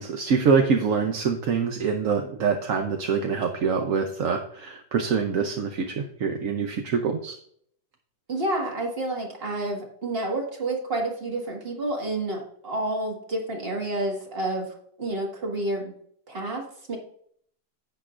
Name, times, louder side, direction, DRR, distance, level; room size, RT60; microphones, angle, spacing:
voice 1, 0.0-7.4, right 5 dB, 60° right, 4 dB, 1.0 m, -25 dB
voice 2, 8.3-15.9 16.3-17.0, right 2 dB, 35° right, 0 dB, 1.8 m, -29 dB
10.5 x 8.2 x 2.5 m, 0.65 s
omnidirectional pair, 1.9 m